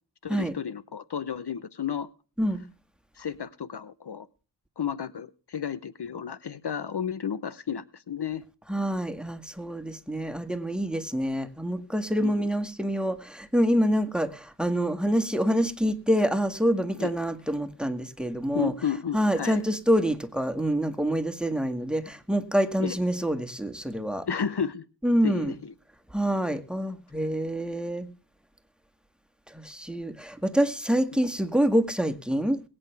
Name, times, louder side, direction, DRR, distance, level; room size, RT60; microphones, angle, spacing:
voice 1, 0.2-2.1 3.2-4.3 4.8-8.4 12.2-12.5 17.0-17.1 18.5-19.6 22.8-23.0 24.3-24.8 25.2-25.7 31.1-31.2, left 7 dB, 65° left, 0.8 m, -32 dB
voice 2, 8.7-18.7 19.1-24.3 25.0-25.6 26.1-28.1 29.5-32.6, equal, ahead, 1.8 m, -26 dB
22.0 x 8.7 x 3.4 m
wide cardioid pair, 45°, 44 cm